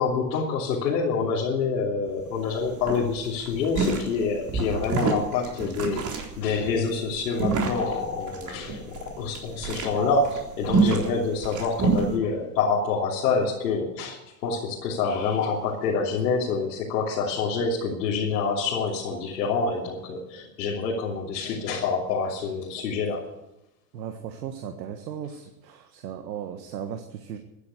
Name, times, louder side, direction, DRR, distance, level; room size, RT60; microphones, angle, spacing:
voice 1, 0.0-23.2, left 4 dB, 85° left, -5 dB, 3.2 m, -27 dB
sound 1, 2.1-2.2 2.4-2.6 2.8-12.1, right 4 dB, 35° right, 3.8 m, -27 dB
voice 2, 23.9-27.4, right 8 dB, 85° right, 6 dB, 1.6 m, -36 dB
15.0 x 10.0 x 8.3 m, 0.93 s
hypercardioid pair, 100°, 49 cm